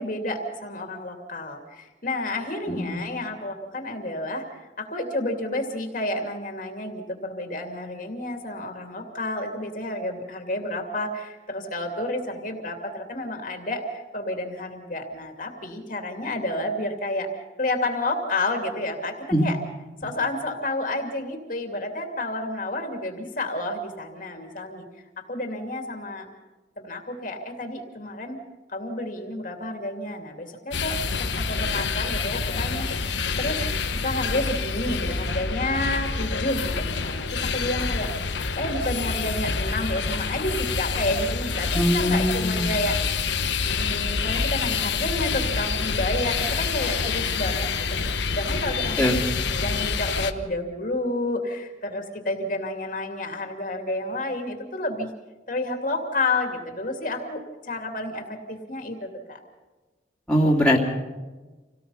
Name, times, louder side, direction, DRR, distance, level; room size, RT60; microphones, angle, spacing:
voice 1, 0.0-19.1 19.4-19.6 20.0-26.3 26.8-28.4 28.7-33.1 33.4-33.6 34.0-43.0 43.7-55.1 55.5-59.4, left 1 dB, 45° left, 3 dB, 2.6 m, -30 dB
sound 1, 30.7-50.3, left 5 dB, 80° left, 1.2 m, -27 dB
voice 2, 41.7-42.7 49.0-49.2 60.3-60.9, equal, 5° left, -4 dB, 3.0 m, -21 dB
27.5 x 18.0 x 5.6 m, 1.2 s
head